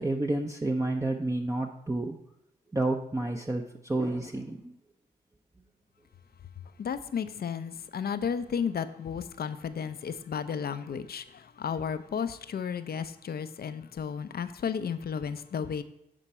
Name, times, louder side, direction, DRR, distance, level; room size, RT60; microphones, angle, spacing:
voice 1, 0.0-2.2 2.7-4.7, right 2 dB, 15° right, 1 dB, 0.7 m, -30 dB
voice 2, 6.8-15.8, left 7 dB, 50° left, 12 dB, 0.6 m, -33 dB
10.0 x 4.5 x 4.3 m, 0.80 s
supercardioid pair, 45°, 20 cm